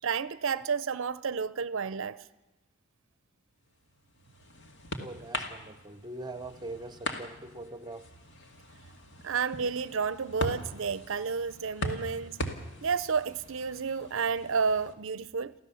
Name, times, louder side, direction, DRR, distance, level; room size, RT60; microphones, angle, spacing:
voice 1, 0.0-2.2 9.2-12.4 12.8-15.5, right 5 dB, 65° right, 0.6 m, -31 dB
sound 1, 3.8-14.9, left 1 dB, 55° left, 2.2 m, -40 dB
voice 2, 5.0-8.1, right 2 dB, 20° right, 0.9 m, -42 dB
24.0 x 15.5 x 7.0 m
head